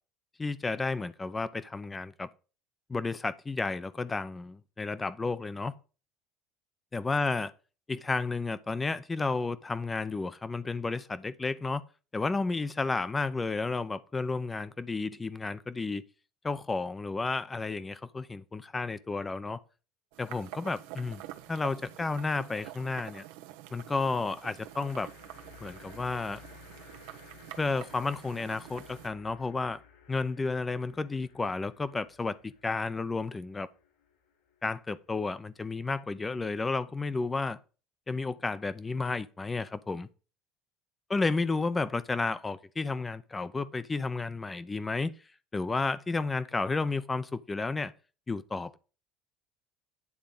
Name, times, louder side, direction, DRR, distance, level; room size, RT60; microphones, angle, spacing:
voice 1, 0.4-2.3 2.9-5.7 6.9-7.5 7.9-11.8 12.1-16.0 16.4-19.6 20.2-21.2 21.5-23.2 23.7-25.1 25.6-26.4 27.6-29.8 30.1-33.7 34.6-37.6 38.1-40.1 41.1-45.1 45.5-47.9 48.3-48.8, left 3 dB, 15° left, 0.7 m, -32 dB
sound 1, 20.1-29.1, right 14 dB, 85° right, 1.0 m, -47 dB
sound 2, 21.2-21.8 24.3-35.7, left 7 dB, 75° left, 5.2 m, -57 dB
9.6 x 3.8 x 7.0 m
supercardioid pair, 120°, 0 cm